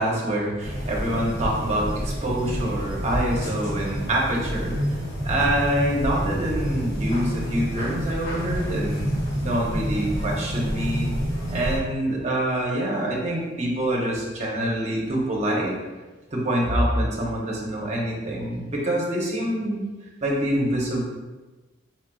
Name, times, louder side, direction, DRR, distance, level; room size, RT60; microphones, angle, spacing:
voice 1, 0.0-4.7 5.2-9.1 9.4-11.1 11.5-15.8 16.3-19.9 20.2-21.0, right 1 dB, 35° right, -3 dB, 0.9 m, -25 dB
sound 1, 0.6-11.8, equal, 60° left, 1.5 m, -28 dB
4.5 x 4.4 x 2.3 m, 1.2 s
head